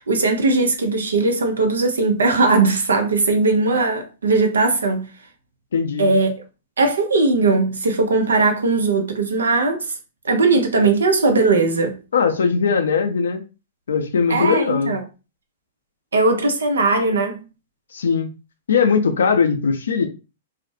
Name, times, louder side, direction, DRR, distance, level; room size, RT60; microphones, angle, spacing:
voice 1, 0.0-5.0 6.0-6.3 6.8-9.9 10.2-11.9 14.3-15.0 16.1-17.4, right 3 dB, 85° right, 0.6 m, -19 dB
voice 2, 5.7-6.1 12.1-13.4 13.9-15.0 17.9-18.3 18.7-20.1, left 5 dB, 80° left, 0.5 m, -19 dB
2.5 x 2.0 x 2.6 m
hypercardioid pair, 115°, 0 cm